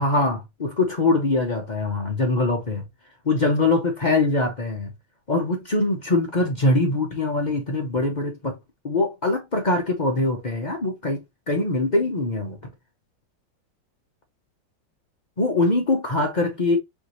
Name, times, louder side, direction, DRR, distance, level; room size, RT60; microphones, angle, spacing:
voice 1, 0.0-2.8 3.2-4.9 5.3-8.6 8.8-12.6 15.4-16.8, left 2 dB, 40° left, 0.6 m, -23 dB
5.0 x 2.7 x 2.9 m
omnidirectional pair, 2.1 m